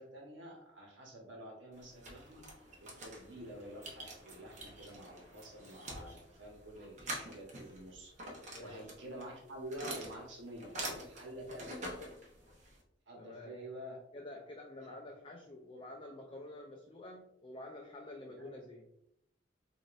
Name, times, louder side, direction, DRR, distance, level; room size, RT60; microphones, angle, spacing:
voice 1, 0.0-2.6 3.0-11.9 13.1-14.0 14.8-15.0 18.3-18.6, right 1 dB, 75° right, -1 dB, 1.1 m, -49 dB
sound 1, 1.7-12.8, right 1 dB, 40° right, 0.8 m, -46 dB
voice 2, 8.5-8.9 13.2-13.6 14.1-18.8, left 1 dB, 25° left, 1 dB, 0.4 m, -49 dB
5.1 x 2.5 x 2.5 m, 0.76 s
head